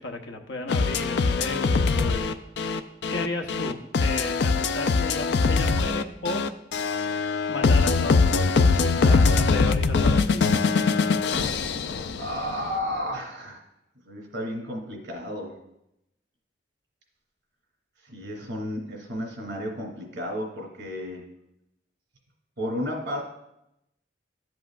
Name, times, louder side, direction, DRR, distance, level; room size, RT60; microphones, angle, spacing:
voice 1, 0.0-2.3 3.1-6.4 7.5-10.5, left 2 dB, 80° left, 5 dB, 0.9 m, -34 dB
sound 1, 0.7-12.6, left 4 dB, 65° left, 0.4 m, -22 dB
voice 2, 12.2-13.6 14.0-15.6 18.0-21.2 22.6-23.2, equal, 65° right, 0 dB, 2.7 m, -32 dB
12.0 x 7.7 x 2.5 m, 0.85 s
head